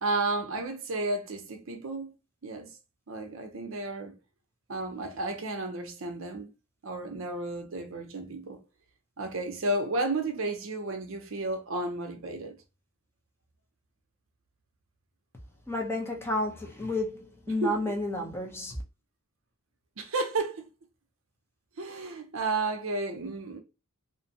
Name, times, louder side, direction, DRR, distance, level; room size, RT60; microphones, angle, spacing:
voice 1, 0.0-2.1 2.4-2.8 3.1-4.2 4.7-6.5 6.8-8.6 9.2-12.6 17.5-17.9 20.0-20.6 21.8-23.6, right 2 dB, 60° right, 0.6 m, -32 dB
voice 2, 15.7-18.8, left 1 dB, 10° left, 0.6 m, -31 dB
2.5 x 2.2 x 2.7 m
head